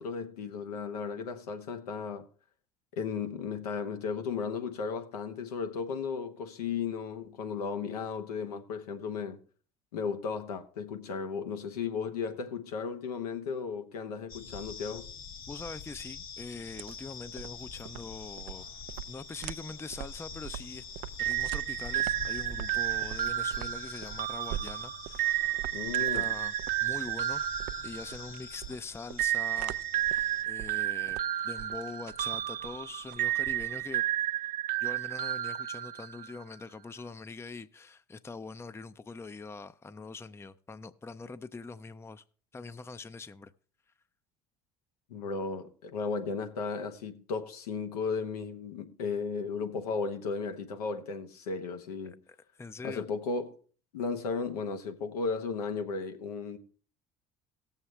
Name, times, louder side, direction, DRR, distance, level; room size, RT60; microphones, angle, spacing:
voice 1, 0.0-2.3 2.9-9.4 9.9-15.1 25.7-26.3 45.1-52.2 52.8-53.6 53.9-56.6, left 5 dB, 85° left, 1.1 m, -35 dB
sound 1, 14.3-30.4, left 5 dB, 45° left, 1.5 m, -46 dB
voice 2, 15.5-18.7 19.1-20.8 21.2-25.7 26.0-26.5 26.8-27.5 27.8-29.8 30.1-34.0 34.8-42.2 42.5-43.5 52.6-53.1, left 4 dB, 15° left, 0.5 m, -43 dB
sound 2, 16.5-34.0, right 12 dB, 65° right, 0.5 m, -44 dB
sound 3, 21.2-28.6 29.2-36.4, right 13 dB, 45° right, 0.8 m, -32 dB
18.0 x 7.2 x 3.2 m
hypercardioid pair, 70°, 19 cm